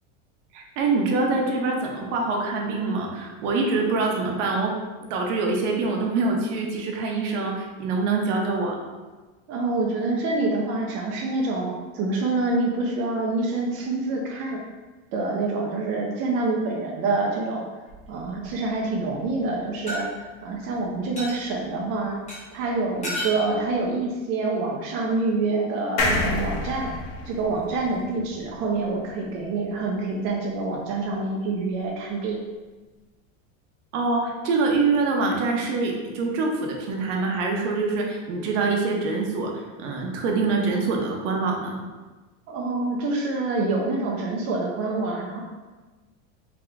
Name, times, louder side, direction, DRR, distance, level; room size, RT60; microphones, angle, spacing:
voice 1, 0.5-4.7 5.1-8.8 33.9-39.5 39.8-41.8, right 3 dB, 65° right, 0 dB, 0.9 m, -25 dB
voice 2, 9.5-14.6 15.1-17.6 18.1-22.2 22.5-26.9 27.2-32.4 42.5-45.4, right 3 dB, 35° right, -2 dB, 0.5 m, -26 dB
sound 1, 17.9-18.5 19.9-20.0 21.2-21.4 22.3-22.4 23.0-23.4, left 1 dB, 15° left, 1.3 m, -31 dB
sound 2, 26.0-29.4 29.8-29.9 30.1-30.2, left 2 dB, 65° left, 1.3 m, -29 dB
3.6 x 2.9 x 3.4 m, 1.2 s
supercardioid pair, 145°, 39 cm